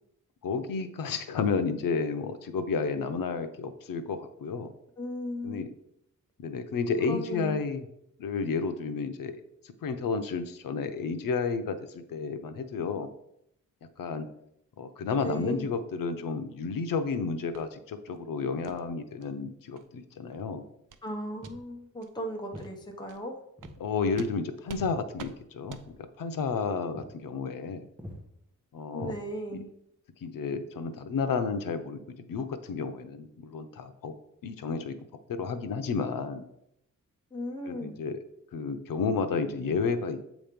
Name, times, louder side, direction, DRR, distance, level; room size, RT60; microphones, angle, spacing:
voice 1, 0.4-4.7 5.4-5.7 6.4-7.9 8.2-13.1 14.0-14.3 14.8-20.7 23.8-27.9 28.7-29.1 29.5-29.6 30.2-32.0 32.3-34.1 34.4-35.0 35.3-36.5 37.6-38.2 38.5-40.2, left 5 dB, 90° left, 9 dB, 0.7 m, -31 dB
voice 2, 5.0-5.7 7.1-7.6 15.1-15.7 21.0-23.4 28.9-29.7 37.3-38.0, equal, 15° left, 2 dB, 0.7 m, -36 dB
sound 1, 17.5-17.7 18.1-18.2 18.6-18.8 19.2-19.3 19.7-19.9 20.3-20.4 20.9-21.1 21.4-21.5 22.0-22.1 22.5-22.7 23.1-23.2 23.6-23.8 24.2-24.3 24.7-24.9 25.2-25.3 25.7-25.9, right 8 dB, 70° right, 0.6 m, -45 dB
Walk footsteps, 21.4-21.7 22.5-22.7 23.6-23.8 24.1-25.6 25.8-26.0 26.5-26.6 26.9-27.1 27.4-27.7 28.0-28.2 28.9-29.6, equal, 5° right, 1.0 m, -44 dB
7.7 x 3.0 x 5.1 m, 0.76 s
wide cardioid pair, 165°, 32 cm